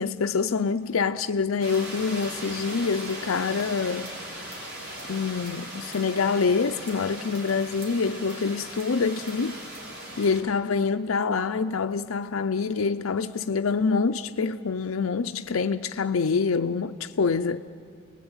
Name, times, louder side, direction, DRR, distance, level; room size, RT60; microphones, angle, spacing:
voice 1, 0.0-4.2 5.1-9.6 10.2-17.6, left 5 dB, 90° left, 0.6 m, -26 dB
sound 1, 1.6-10.4, right 1 dB, 55° right, 4.7 m, -39 dB
30.0 x 20.0 x 9.0 m
head